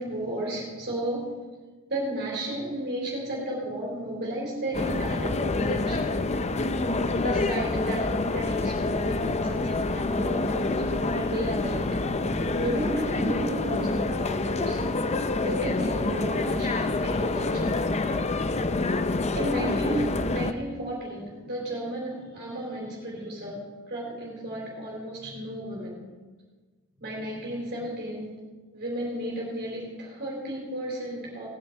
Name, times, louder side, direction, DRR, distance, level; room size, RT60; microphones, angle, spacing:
voice 1, 0.0-1.4 1.9-6.3 7.2-12.0 12.6-14.9 15.4-17.8 19.3-26.0 27.0-31.5, right 1 dB, 50° right, -4 dB, 3.8 m, -33 dB
sound 1, 4.7-20.5, left 2 dB, 30° left, 0.6 m, -27 dB
19.0 x 9.9 x 4.5 m, 1.4 s
head